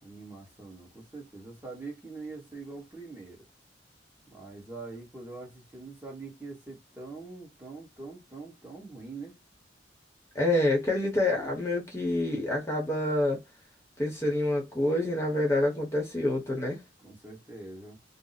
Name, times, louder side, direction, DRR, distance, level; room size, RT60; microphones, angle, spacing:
voice 1, 0.0-3.4 4.3-9.4 17.0-18.0, right 3 dB, 10° right, 1.1 m, -44 dB
voice 2, 10.3-13.4 14.0-16.8, left 1 dB, 15° left, 0.9 m, -27 dB
2.6 x 2.0 x 3.9 m
head